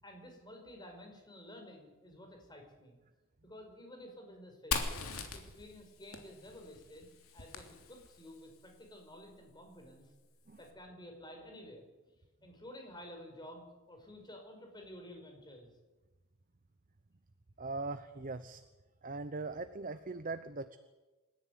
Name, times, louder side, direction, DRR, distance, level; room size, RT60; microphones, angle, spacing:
voice 1, 0.0-3.0 3.4-4.9 5.3-10.1 10.6-11.8 12.4-15.7, left 1 dB, 20° left, 3 dB, 5.5 m, -52 dB
Fire, 4.7-8.4, left 5 dB, 80° left, 3.2 m, -40 dB
voice 2, 17.6-18.6 19.0-20.8, right 3 dB, 40° right, 11 dB, 0.9 m, -40 dB
27.0 x 14.0 x 9.6 m, 1.2 s
head